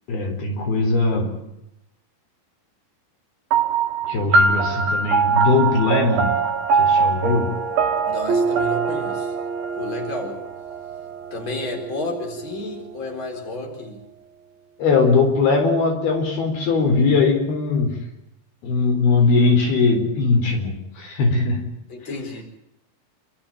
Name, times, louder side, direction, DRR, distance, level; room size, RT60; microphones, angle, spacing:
voice 1, 0.1-1.4 4.1-6.4 6.7-7.6 14.8-18.1 18.6-21.7, left 3 dB, 80° left, 3 dB, 6.0 m, -20 dB
sound 1, 3.5-12.3, right 5 dB, 75° right, 3.1 m, -22 dB
voice 2, 8.0-9.3 9.7-10.4 11.3-14.0 21.9-22.4, left 2 dB, 30° left, 2 dB, 4.9 m, -31 dB
28.5 x 13.5 x 9.0 m, 0.84 s
omnidirectional pair, 4.3 m